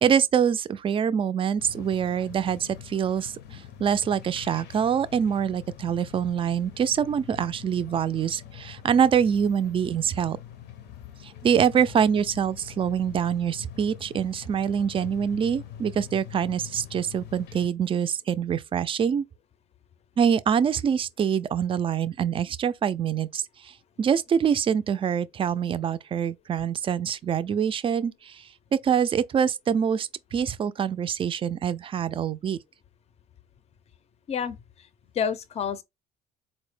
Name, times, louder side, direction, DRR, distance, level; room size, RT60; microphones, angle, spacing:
voice 1, 0.0-10.4 11.2-19.2 20.2-28.4 28.7-32.6, right 8 dB, 30° right, 0.3 m, -25 dB
sound 1, 1.6-17.7, left 10 dB, 80° left, 0.7 m, -44 dB
voice 2, 34.3-34.9 35.1-35.8, left 7 dB, 40° left, 0.5 m, -29 dB
4.2 x 2.0 x 3.2 m
cardioid pair, 110°, 17 cm